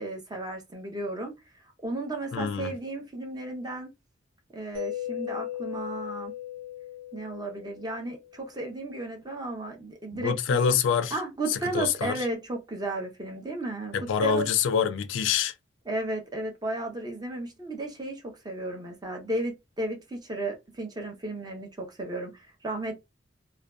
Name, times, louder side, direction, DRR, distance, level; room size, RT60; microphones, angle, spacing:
voice 1, 0.0-1.3 1.8-3.9 4.5-6.3 7.1-10.8 11.1-14.5 15.9-23.0, right 2 dB, 20° right, 0.6 m, -34 dB
voice 2, 2.3-2.7 10.1-11.2 11.5-12.2 13.9-15.5, left 7 dB, 80° left, 0.3 m, -26 dB
Mallet percussion, 4.7-8.5, left 12 dB, 90° right, 1.0 m, -37 dB
2.5 x 2.2 x 2.2 m
head